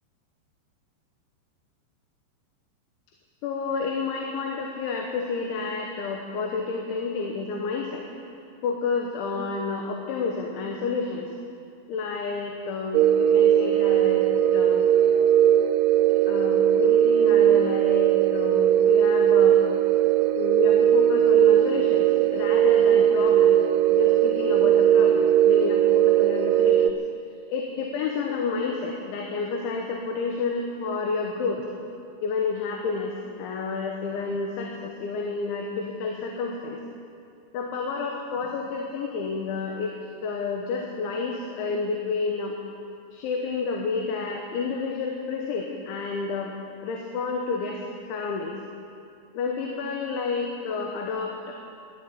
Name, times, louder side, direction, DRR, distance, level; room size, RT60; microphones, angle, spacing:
voice 1, 3.4-8.0 8.6-11.3 11.9-14.2 14.5-14.9 16.3-19.6 20.4-23.6 23.9-27.0 27.5-31.6 32.2-36.8 37.5-42.6 43.1-46.5 46.8-47.8 48.1-48.6 49.4-51.5, left 4 dB, 85° left, 1 dB, 3.6 m, -30 dB
sound 1, 12.9-26.9, right 10 dB, 90° right, 3.0 m, -19 dB
14.0 x 11.5 x 8.8 m, 2.5 s
omnidirectional pair, 5.3 m